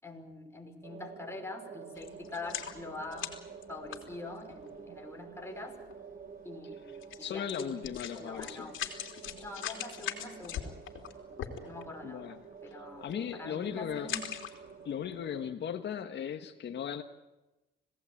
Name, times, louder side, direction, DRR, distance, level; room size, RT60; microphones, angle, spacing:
voice 1, 0.0-3.3 3.7-5.7 6.4-7.7 8.1-8.8 9.4-10.8 11.6-14.3, left 2 dB, 15° left, 3 dB, 5.5 m, -44 dB
sound 1, 0.8-15.5, right 6 dB, 50° right, 2.5 m, -49 dB
sound 2, 2.0-4.7 5.5-5.6 5.9-6.0 7.0-7.2 7.5-12.0 12.5-12.7 13.0-13.4 13.9-14.9 15.3-15.4, left 10 dB, 75° left, 3.4 m, -40 dB
voice 2, 7.2-8.7 12.0-12.4 13.0-14.1 14.9-17.0, left 9 dB, 60° left, 5 dB, 1.8 m, -37 dB
26.5 x 18.0 x 8.8 m, 1.0 s
cardioid pair, 90°, 20 cm